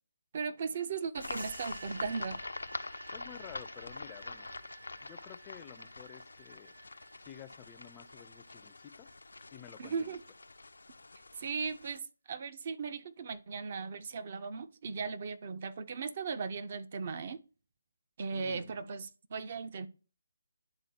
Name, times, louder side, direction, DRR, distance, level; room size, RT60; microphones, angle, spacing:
voice 1, 0.3-2.4 9.8-10.2 11.4-17.4 18.2-19.9, right 5 dB, 45° right, 0.6 m, -37 dB
sound 1, 1.1-12.0, left 3 dB, 85° left, 0.4 m, -45 dB
sound 2, 1.2-9.5, right 3 dB, 80° right, 1.4 m, -53 dB
voice 2, 3.1-4.5 5.0-6.7 7.2-9.1 9.5-10.1 18.3-18.9, left 10 dB, 20° left, 0.4 m, -52 dB
11.0 x 3.8 x 2.8 m
figure-of-eight pair, 155°, 0 cm